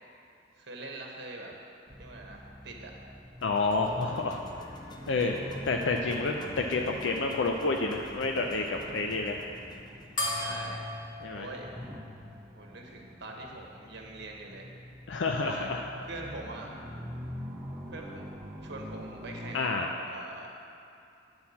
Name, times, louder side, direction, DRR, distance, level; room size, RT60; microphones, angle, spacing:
voice 1, 0.6-1.5 2.0-2.9 3.5-3.8 8.8-9.2 10.4-10.8 11.3-11.7 12.5-14.7 15.4-16.7 17.9-18.3 18.6-20.5, right 2 dB, 65° right, 0 dB, 1.2 m, -43 dB
sound 1, 1.9-19.5, equal, 10° right, 1.1 m, -45 dB
voice 2, 3.4-4.4 5.1-5.3 5.7-9.4 11.2-11.5 15.1-15.8 19.5-19.9, left 3 dB, 70° left, 2 dB, 0.5 m, -29 dB
sound 2, 3.4-11.5, left 1 dB, 25° left, 0.6 m, -49 dB
sound 3, 10.2-13.0, left 2 dB, 45° left, 1.7 m, -37 dB
9.6 x 4.4 x 7.0 m, 2.6 s
head